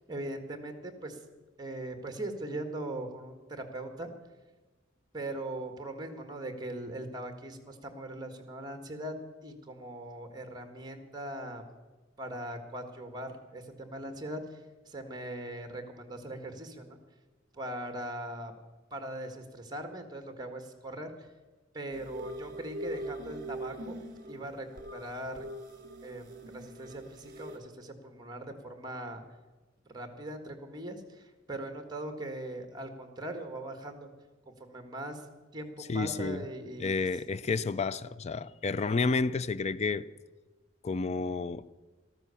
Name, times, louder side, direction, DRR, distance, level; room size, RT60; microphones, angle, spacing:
voice 1, 0.1-1.2 1.6-4.1 5.1-9.2 9.4-11.6 12.2-14.6 14.8-17.0 17.5-18.5 18.9-21.1 21.7-24.0 24.3-24.7 24.9-25.4 26.0-29.2 29.8-34.1 34.4-35.2 35.5-37.0, right 1 dB, 20° right, 1.7 m, -40 dB
sound 1, 21.9-27.6, right 1 dB, 45° right, 2.5 m, -42 dB
voice 2, 35.9-36.4 36.8-40.1 40.8-41.7, left 4 dB, 35° left, 0.4 m, -30 dB
13.5 x 13.0 x 7.0 m
head